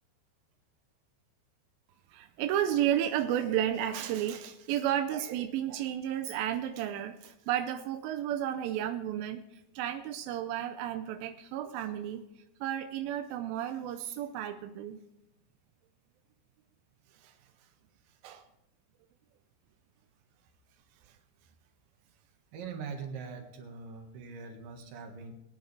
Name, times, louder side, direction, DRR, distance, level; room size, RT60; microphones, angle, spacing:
voice 1, 2.1-9.4 9.8-12.2 12.6-15.0 17.2-17.3 18.2-18.4, right 11 dB, 80° right, 7 dB, 2.1 m, -32 dB
voice 2, 22.5-25.3, right 5 dB, 60° right, 4 dB, 3.0 m, -42 dB
20.5 x 10.5 x 3.4 m, 0.90 s
omnidirectional pair, 5.0 m